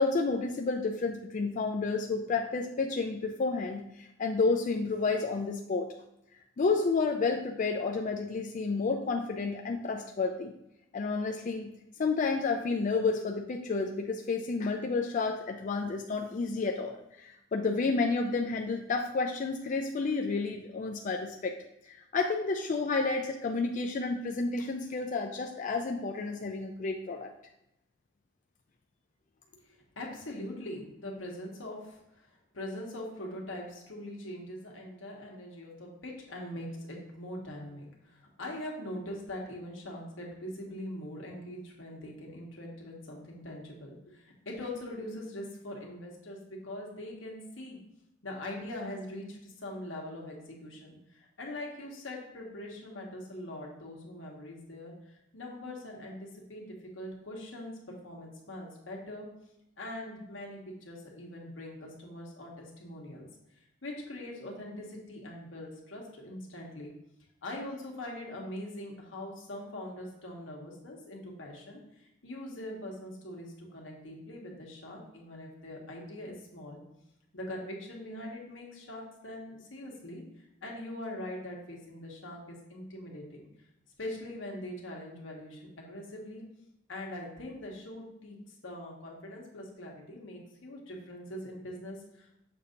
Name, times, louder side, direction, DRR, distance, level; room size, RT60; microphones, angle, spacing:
voice 1, 0.0-5.9 6.6-10.5 10.9-11.7 12.0-21.6 21.9-27.3, left 4 dB, 40° left, 3 dB, 0.4 m, -30 dB
voice 2, 29.6-47.8 48.2-59.3 59.8-63.3 63.8-66.9 67.4-76.8 77.3-80.2 80.6-83.5 84.0-86.4 86.9-92.4, left 1 dB, 85° left, -1 dB, 1.4 m, -42 dB
6.8 x 2.7 x 5.1 m, 0.85 s
head